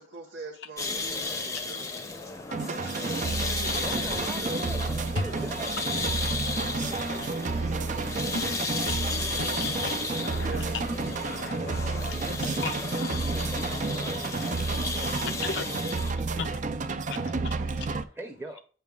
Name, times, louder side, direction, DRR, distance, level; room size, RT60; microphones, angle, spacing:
voice 1, 0.0-1.9 2.6-4.7 10.4-10.8, right 3 dB, 85° right, 1.2 m, -42 dB
sound 1, 0.8-16.1, left 3 dB, 15° left, 0.7 m, -34 dB
voice 2, 2.5-2.9 3.6-3.7 5.2-5.3 6.5-7.9 8.3-10.7 11.2-12.2 12.6-13.2 14.4-14.7 15.4-15.7 16.4-16.5 17.1-17.5, left 4 dB, 60° left, 0.5 m, -38 dB
sound 2, 2.5-18.0, right 3 dB, 40° right, 0.4 m, -31 dB
voice 3, 3.8-6.0 17.9-18.6, right 1 dB, 15° right, 0.8 m, -40 dB
voice 4, 7.0-9.0 11.9-12.6 13.0-17.0 17.2-18.1, right 1 dB, 60° right, 0.9 m, -47 dB
8.3 x 5.5 x 2.4 m
head